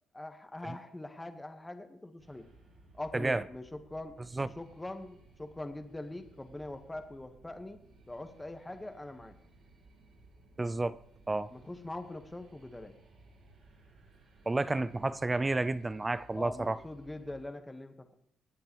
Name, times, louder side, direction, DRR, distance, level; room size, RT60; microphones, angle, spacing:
voice 1, 0.1-2.5 2.9-4.2 4.6-7.8 8.1-9.4 11.5-12.9 16.3-18.2, left 2 dB, 15° left, 1.3 m, -43 dB
sound 1, 2.2-17.4, right 3 dB, 60° right, 6.6 m, -60 dB
voice 2, 3.1-3.4 4.3-4.5 10.6-11.0 11.3-11.5 14.5-16.8, right 2 dB, 20° right, 0.4 m, -31 dB
25.0 x 8.7 x 3.1 m
cardioid pair, 90°, 0 cm